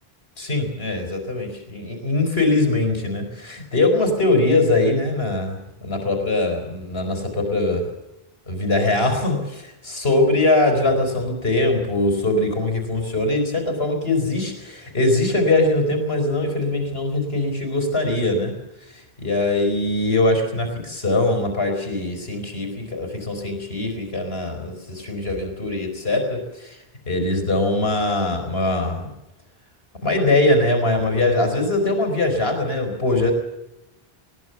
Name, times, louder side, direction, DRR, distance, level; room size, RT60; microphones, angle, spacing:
voice 1, 0.4-7.9 8.5-18.6 18.9-26.8 27.1-29.1 30.0-33.3, left 2 dB, 75° left, 4 dB, 4.8 m, -22 dB
21.0 x 20.0 x 7.0 m, 0.91 s
omnidirectional pair, 1.0 m